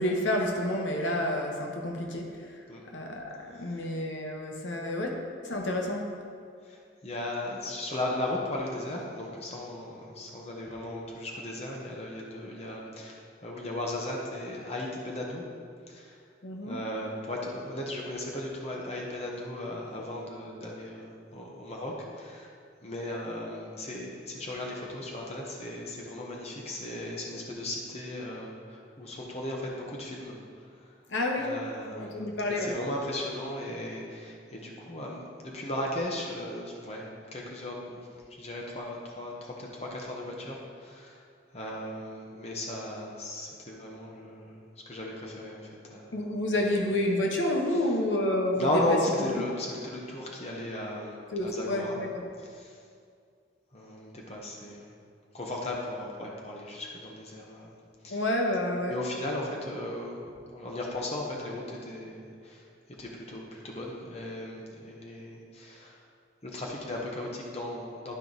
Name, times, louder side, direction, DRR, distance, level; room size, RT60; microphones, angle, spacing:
voice 1, 0.0-2.3 2.9-5.1 5.4-6.0 16.4-16.8 31.1-31.5 31.9-32.7 46.1-48.7 49.3-49.4 51.3-52.2 58.1-58.9, left 1 dB, 85° left, 1 dB, 1.0 m, -29 dB
voice 2, 3.5-3.8 6.6-15.4 15.9-16.2 16.6-22.5 22.8-30.9 31.4-37.0 37.3-38.0 38.3-41.2 41.5-46.1 46.5-46.7 47.7-47.9 48.5-52.0 52.4-52.8 53.7-54.9 55.3-57.7 58.0-58.2 58.9-60.2 60.5-66.0 66.4-68.2, left 1 dB, 35° left, -2 dB, 1.0 m, -36 dB
11.5 x 4.5 x 4.0 m, 2.2 s
head